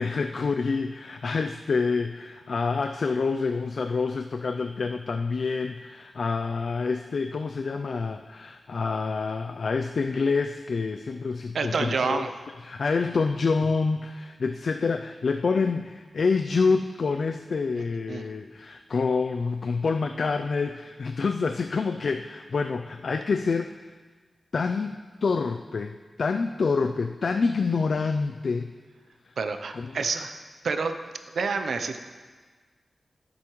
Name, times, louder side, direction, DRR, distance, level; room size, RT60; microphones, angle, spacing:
voice 1, 0.0-12.3 12.6-23.8 24.5-28.7 29.7-30.0, left 4 dB, 60° left, 7 dB, 0.3 m, -27 dB
voice 2, 11.5-12.3 18.1-18.3 29.4-30.4 30.6-30.9 31.3-32.0, right 4 dB, 80° right, 8 dB, 0.6 m, -28 dB
14.0 x 7.6 x 3.1 m, 1.4 s
wide cardioid pair, 135°, 0 cm